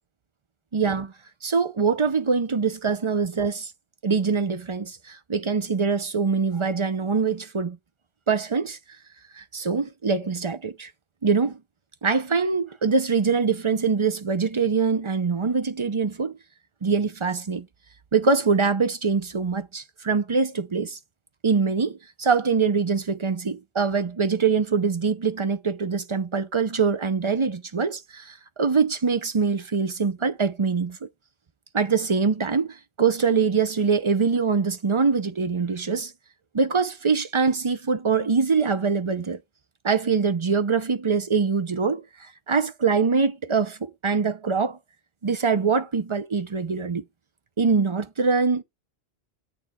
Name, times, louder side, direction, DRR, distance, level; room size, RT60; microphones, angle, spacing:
voice 1, 0.7-1.1 1.4-3.7 4.0-7.8 8.3-8.8 9.4-10.9 11.2-11.6 12.0-16.3 16.8-17.7 18.1-21.0 21.4-31.1 31.7-36.1 36.5-39.4 39.8-42.0 42.5-44.8 45.2-47.0 47.6-48.6, right 5 dB, 35° right, 0.6 m, -23 dB
8.5 x 6.7 x 3.6 m
omnidirectional pair, 1.1 m